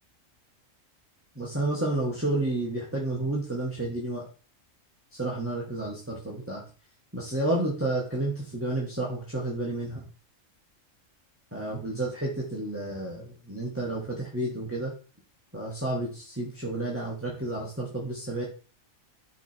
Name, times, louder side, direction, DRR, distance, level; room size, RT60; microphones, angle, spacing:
voice 1, 1.4-4.2 5.1-6.6 7.1-10.0 11.5-14.9 15.5-18.4, right 2 dB, 10° right, -4 dB, 2.0 m, -31 dB
9.9 x 5.8 x 4.6 m, 0.38 s
omnidirectional pair, 1.3 m